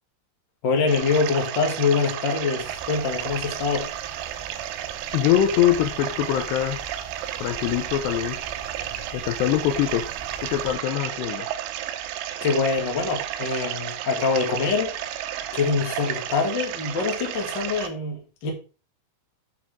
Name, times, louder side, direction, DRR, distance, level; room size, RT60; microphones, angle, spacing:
voice 1, 0.6-3.9 12.4-15.2 15.5-18.5, left 4 dB, 50° left, 1.4 m, -24 dB
sound 1, 0.9-17.9, right 12 dB, 85° right, 3.2 m, -32 dB
sound 2, 2.6-10.8, right 2 dB, 5° right, 4.2 m, -44 dB
voice 2, 5.1-6.8 7.4-8.4 9.1-10.1 10.4-11.5, left 12 dB, 85° left, 2.5 m, -23 dB
8.3 x 7.4 x 3.6 m
omnidirectional pair, 5.6 m